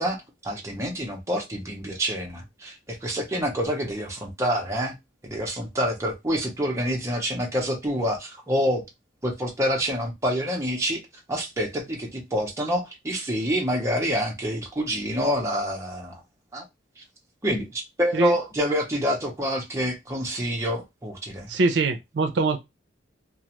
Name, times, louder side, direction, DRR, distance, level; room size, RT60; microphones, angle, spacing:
voice 1, 0.0-5.0 5.2-8.9 9.2-11.0 11.3-16.2 16.5-16.6 17.0-17.1 17.4-21.5, equal, 15° right, 0.6 m, -27 dB
voice 2, 21.5-22.6, right 3 dB, 70° right, 0.4 m, -23 dB
2.4 x 2.3 x 2.8 m
head